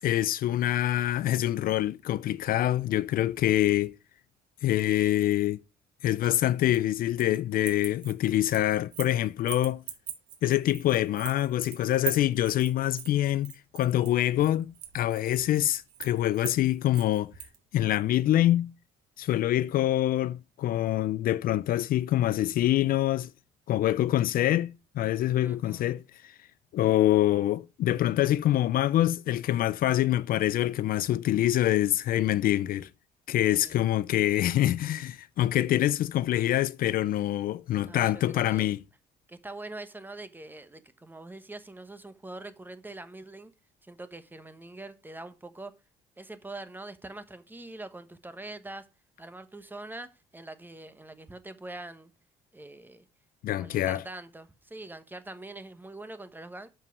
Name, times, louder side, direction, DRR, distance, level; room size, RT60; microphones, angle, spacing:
voice 1, 0.0-4.0 4.6-5.6 6.0-9.8 10.4-17.3 17.7-18.7 19.2-23.3 23.7-26.3 26.7-32.9 33.3-38.8 53.4-54.0, left 13 dB, 60° left, 0.4 m, -25 dB
sound 1, 6.2-7.4 7.6-9.2 9.5-17.6, right 10 dB, 85° right, 1.9 m, -41 dB
voice 2, 25.4-26.0 33.6-34.0 37.8-38.7 39.3-43.5 43.8-45.8 46.2-48.9 49.2-52.1 52.5-53.0 53.6-56.7, right 2 dB, 10° right, 1.1 m, -44 dB
7.2 x 5.6 x 5.9 m
cardioid pair, 110°, 17 cm